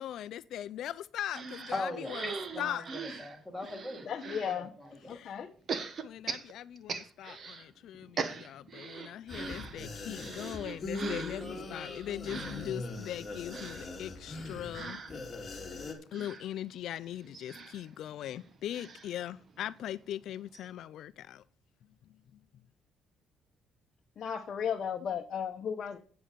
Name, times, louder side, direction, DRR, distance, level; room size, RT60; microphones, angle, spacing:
voice 1, 0.0-3.2 5.1-5.4 6.0-15.0 16.1-21.4 22.3-22.4, left 11 dB, 65° left, 0.5 m, -40 dB
sound 1, 1.3-4.6 5.7-7.7 7.9-19.9 20.2-20.3 20.5-20.7, right 5 dB, 40° right, 1.2 m, -42 dB
voice 2, 1.7-4.1 4.4-5.2, left 2 dB, 5° right, 3.2 m, -40 dB
voice 3, 4.1-4.7 5.1-5.5 24.2-26.0, left 7 dB, 45° left, 1.0 m, -35 dB
sound 2, 9.3-15.9, left 3 dB, 25° left, 2.5 m, -41 dB
8.7 x 7.8 x 6.8 m
cardioid pair, 145°, 0 cm